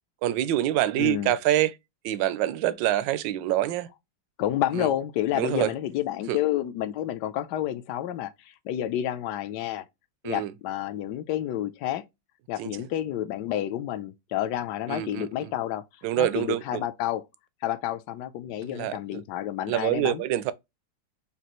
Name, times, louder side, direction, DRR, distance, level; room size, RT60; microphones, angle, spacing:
voice 1, 0.2-1.7 2.0-3.9 4.7-4.9 5.3-5.7 6.3-6.4 10.2-10.5 12.6-12.7 14.9-15.5 16.0-16.8 18.6-19.2 19.7-20.5, right 13 dB, 75° right, 1.2 m, -26 dB
voice 2, 1.0-1.3 4.4-8.3 8.6-9.8 10.2-12.0 12.5-15.8 16.2-17.2 17.6-20.2, left 12 dB, 75° left, 1.1 m, -29 dB
5.3 x 2.4 x 2.9 m
omnidirectional pair, 2.1 m